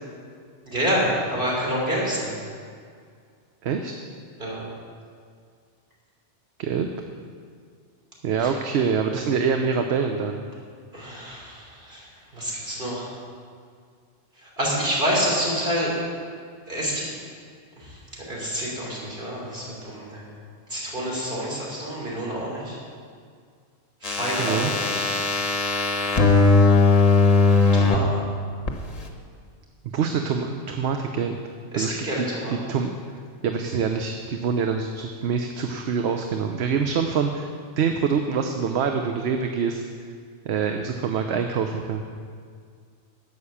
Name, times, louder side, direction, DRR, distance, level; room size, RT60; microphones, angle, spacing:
voice 1, 0.7-2.4 4.4-4.6 8.4-8.5 10.9-12.0 12.3-13.1 14.4-15.9 16.7-17.0 17.8-18.0 18.3-20.3 20.7-22.8 24.0-25.2 27.7-28.2 31.7-32.6, equal, 45° right, -4 dB, 3.7 m, -28 dB
voice 2, 3.6-3.9 6.6-6.9 8.2-10.4 24.4-24.7 29.9-31.4 31.7-32.9 33.4-37.5 37.8-39.8 40.4-42.0, right 6 dB, 65° right, 5 dB, 0.9 m, -25 dB
sound 1, 24.0-28.0 28.7-28.8, left 4 dB, 35° left, 1.1 m, -19 dB
11.5 x 8.6 x 7.1 m, 2.1 s
omnidirectional pair, 1.2 m